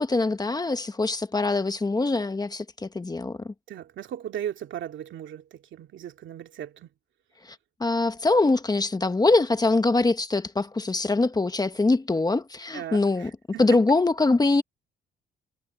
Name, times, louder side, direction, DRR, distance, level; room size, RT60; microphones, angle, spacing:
voice 1, 0.0-3.5 7.8-13.3 13.6-14.6, left 3 dB, 20° left, 1.4 m, -23 dB
voice 2, 3.7-6.9 12.7-13.8, right 10 dB, 70° right, 2.5 m, -37 dB
cardioid pair, 90°, 20 cm